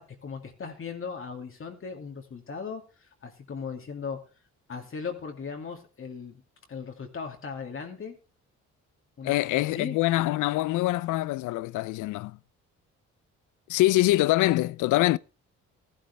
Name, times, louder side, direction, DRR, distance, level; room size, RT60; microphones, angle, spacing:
voice 1, 0.0-4.2 4.7-6.4 6.7-8.1 9.2-10.0, left 5 dB, 45° left, 2.3 m, -38 dB
voice 2, 9.2-12.4 13.7-15.2, left 17 dB, 90° left, 0.5 m, -24 dB
13.5 x 11.5 x 3.3 m
cardioid pair, 90°, 30 cm